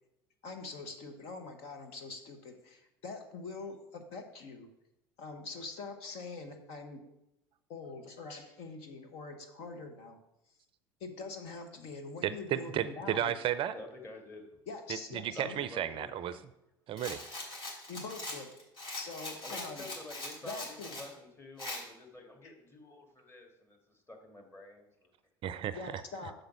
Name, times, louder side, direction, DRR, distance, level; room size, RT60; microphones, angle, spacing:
voice 1, 0.4-4.7 5.2-7.0 7.7-10.2 11.0-13.3 14.7-15.6 17.9-18.5 18.9-19.9 20.4-21.0 25.8-26.3, left 3 dB, 60° left, 5 dB, 1.2 m, -44 dB
voice 2, 12.2-13.8 15.1-16.3 16.9-17.2 25.4-26.0, right 10 dB, 45° right, 14 dB, 0.5 m, -33 dB
voice 3, 13.7-14.6 15.4-16.5 18.3-18.4 19.4-25.1, left 2 dB, 20° left, 2 dB, 1.9 m, -49 dB
Rattle, 17.0-21.1 21.6-21.8, left 1 dB, 45° left, 3.2 m, -42 dB
6.6 x 5.1 x 6.1 m, 0.86 s
hypercardioid pair, 75°, 12 cm